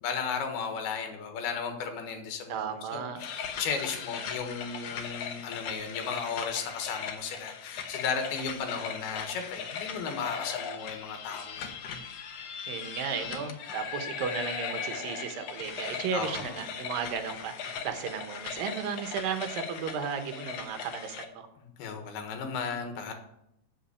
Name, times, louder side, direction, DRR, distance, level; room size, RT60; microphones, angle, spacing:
voice 1, 0.0-11.7 16.1-16.6 21.6-23.1, left 6 dB, 90° left, 5 dB, 3.5 m, -35 dB
voice 2, 2.5-3.2 12.7-21.5, right 6 dB, 75° right, 7 dB, 2.7 m, -34 dB
sound 1, 3.2-21.3, left 7 dB, 75° left, 1.5 m, -39 dB
8.0 x 7.3 x 8.3 m, 0.80 s
omnidirectional pair, 4.4 m